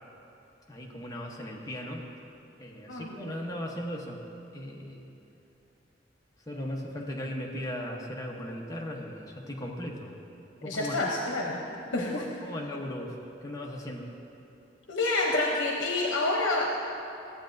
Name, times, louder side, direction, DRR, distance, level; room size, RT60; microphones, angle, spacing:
voice 1, 0.7-2.0 2.6-4.2 4.5-5.1 6.5-10.1 10.6-11.0 11.7-13.2 13.4-14.1, left 1 dB, 20° left, -1 dB, 0.9 m, -37 dB
voice 2, 10.6-11.6 11.9-12.1 14.9-16.8, left 2 dB, 85° left, -1 dB, 0.8 m, -28 dB
13.5 x 8.4 x 2.6 m, 2.8 s
head